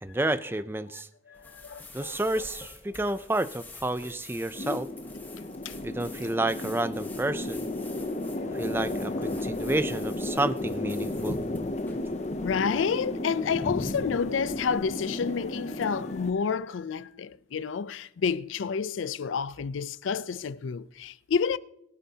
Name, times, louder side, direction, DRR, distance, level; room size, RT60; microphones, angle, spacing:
voice 1, 0.0-1.1 1.9-4.9 5.8-7.7 8.5-11.4, right 2 dB, 10° right, 0.4 m, -30 dB
voice 2, 0.9-2.4 5.6-5.8 12.4-21.6, left 6 dB, 90° left, 0.4 m, -30 dB
sound 1, 1.3-12.6, left 2 dB, 10° left, 1.0 m, -49 dB
sound 2, 4.5-16.3, left 1 dB, 35° left, 0.5 m, -33 dB
22.5 x 9.0 x 2.8 m
head